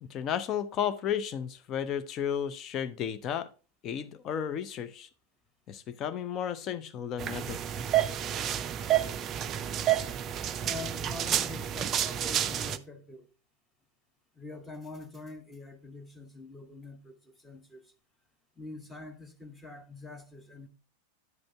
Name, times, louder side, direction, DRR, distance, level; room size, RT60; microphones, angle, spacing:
voice 1, 0.0-3.5 3.8-5.1 5.7-7.6, left 9 dB, 30° left, 0.6 m, -33 dB
sound 1, 7.2-12.8, right 11 dB, 30° right, 0.4 m, -30 dB
voice 2, 10.6-13.3 14.4-17.8 18.6-20.7, left 2 dB, 10° left, 1.1 m, -45 dB
9.3 x 5.2 x 3.4 m
figure-of-eight pair, 90°, 0 cm